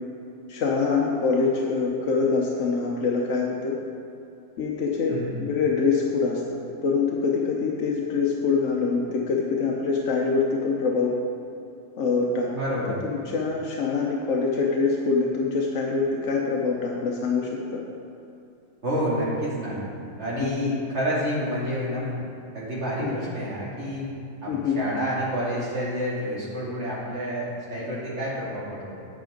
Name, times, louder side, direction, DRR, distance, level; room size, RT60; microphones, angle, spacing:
voice 1, 0.5-3.7 4.6-6.4 6.8-11.1 12.0-12.5 13.0-17.8 20.4-20.7 23.0-23.1 24.5-24.8, left 4 dB, 60° left, -1 dB, 0.8 m, -24 dB
voice 2, 5.1-5.4 12.5-13.0 18.8-19.8 20.2-22.1 22.5-24.1 24.4-29.0, equal, 35° right, -8 dB, 2.7 m, -29 dB
9.8 x 8.4 x 3.8 m, 2.6 s
omnidirectional pair, 2.1 m